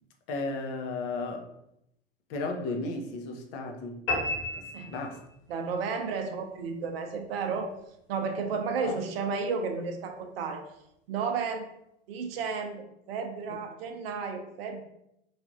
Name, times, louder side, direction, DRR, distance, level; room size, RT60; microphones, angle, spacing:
voice 1, 0.3-1.5 2.3-4.0 4.5-5.2 8.8-9.0, left 3 dB, 50° left, 3 dB, 0.7 m, -34 dB
sound 1, 4.1-5.6, left 2 dB, 70° left, 1.1 m, -32 dB
voice 2, 5.5-7.7 8.1-10.6 11.1-11.7 12.1-14.8, right 5 dB, 70° right, 5 dB, 0.6 m, -32 dB
3.2 x 2.5 x 2.5 m, 0.80 s
hypercardioid pair, 85°, 30 cm